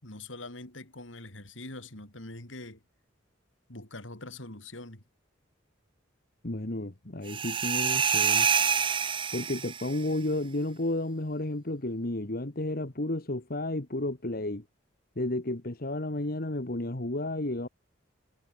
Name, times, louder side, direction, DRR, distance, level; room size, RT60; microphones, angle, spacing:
voice 1, 0.0-2.8 3.7-5.0, left 2 dB, 80° left, 5.3 m, -43 dB
voice 2, 6.4-8.5 9.3-14.6 15.1-17.7, left 1 dB, 50° left, 1.7 m, -32 dB
sound 1, 7.3-10.0, right 7 dB, 25° right, 0.9 m, -27 dB
head